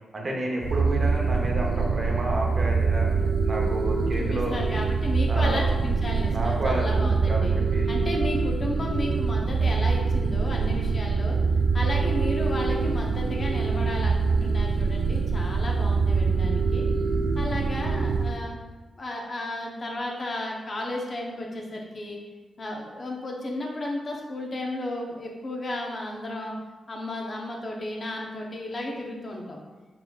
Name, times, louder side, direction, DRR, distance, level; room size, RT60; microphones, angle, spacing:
voice 1, 0.1-3.1 3.4-4.6 5.3-5.7 6.3-7.9, right 1 dB, 45° right, -1 dB, 0.8 m, -30 dB
sound 1, 0.6-18.4, right 4 dB, 65° right, 0.3 m, -24 dB
voice 2, 4.2-7.5 7.9-11.4 11.7-16.8 17.4-18.6 19.0-22.2 22.6-26.6 26.9-29.6, left 1 dB, 45° left, -1 dB, 0.8 m, -33 dB
4.1 x 4.0 x 2.4 m, 1.2 s
cardioid pair, 75°, 0 cm